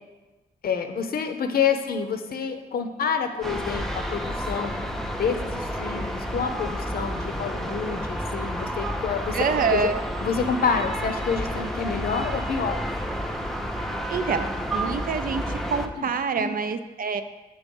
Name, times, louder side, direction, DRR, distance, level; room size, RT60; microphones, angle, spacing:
voice 1, 0.6-4.8 5.2-9.4 9.7-9.9 10.2-12.8 16.0-16.1 16.4-16.5, left 6 dB, 70° left, 7 dB, 0.7 m, -28 dB
sound 1, 3.4-15.9, equal, ahead, 0.6 m, -30 dB
voice 2, 9.3-10.0 14.1-17.2, right 5 dB, 65° right, 9 dB, 0.5 m, -26 dB
7.7 x 4.1 x 5.3 m, 1.2 s
cardioid pair, 80°, 16 cm